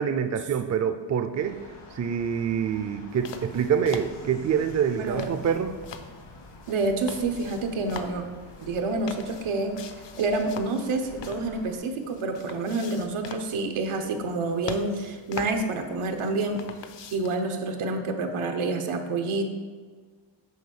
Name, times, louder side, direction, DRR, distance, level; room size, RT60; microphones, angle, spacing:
voice 1, 0.0-1.6 1.9-5.7, right 7 dB, 35° right, 9 dB, 0.4 m, -26 dB
sound 1, 1.3-11.8, left 1 dB, 80° left, 2.2 m, -48 dB
sound 2, 3.1-17.4, left 7 dB, 65° left, 0.7 m, -44 dB
voice 2, 5.0-5.3 6.7-8.2 8.6-9.7 10.2-16.6 17.1-19.5, right 3 dB, 90° right, 5 dB, 1.0 m, -28 dB
7.1 x 4.4 x 6.4 m, 1.5 s
wide cardioid pair, 125°, 48 cm